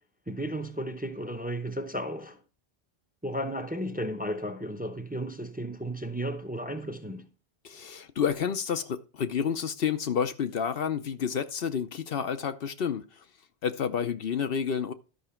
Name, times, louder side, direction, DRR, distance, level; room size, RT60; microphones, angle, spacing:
voice 1, 0.3-2.4 3.2-7.3, equal, 10° right, 0.7 m, -34 dB
voice 2, 7.6-13.0 13.6-14.9, left 7 dB, 65° left, 0.9 m, -29 dB
12.0 x 5.9 x 4.4 m
omnidirectional pair, 1.1 m